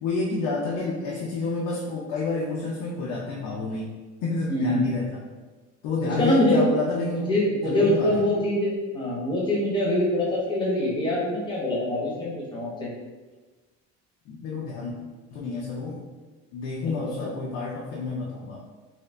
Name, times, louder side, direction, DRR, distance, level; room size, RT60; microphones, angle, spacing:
voice 1, 0.0-3.9 4.2-5.2 5.8-7.4 7.6-8.2 14.3-14.9 15.3-16.0 16.5-18.6, left 3 dB, 85° left, -3 dB, 0.6 m, -29 dB
voice 2, 4.5-4.8 6.0-6.7 7.3-12.7 17.2-17.3, left 1 dB, 15° left, -5 dB, 0.7 m, -24 dB
2.8 x 2.7 x 3.2 m, 1.3 s
cardioid pair, 165°, 30 cm